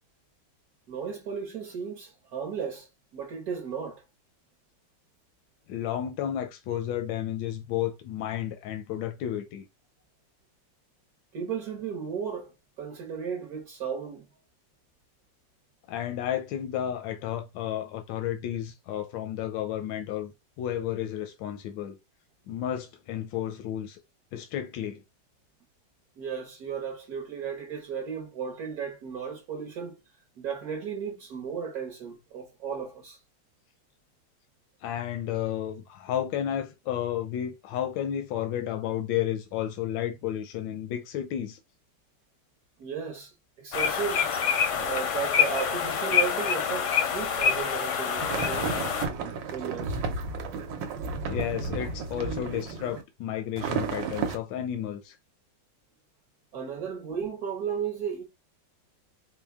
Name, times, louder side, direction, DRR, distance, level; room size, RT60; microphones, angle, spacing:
voice 1, 0.9-4.0 11.3-14.3 26.2-30.0 30.4-33.2 42.8-44.3 44.7-50.0 56.5-58.2, right 7 dB, 60° right, 1.2 m, -35 dB
voice 2, 5.7-9.7 15.9-20.3 20.6-22.0 22.5-24.0 24.3-25.0 34.8-41.6 51.3-55.2, left 11 dB, 85° left, 1.3 m, -32 dB
sound 1, 43.7-49.1, left 7 dB, 65° left, 0.7 m, -26 dB
sound 2, 48.2-53.0 53.6-54.4, right 4 dB, 90° right, 1.4 m, -32 dB
4.4 x 2.1 x 3.4 m
omnidirectional pair, 2.0 m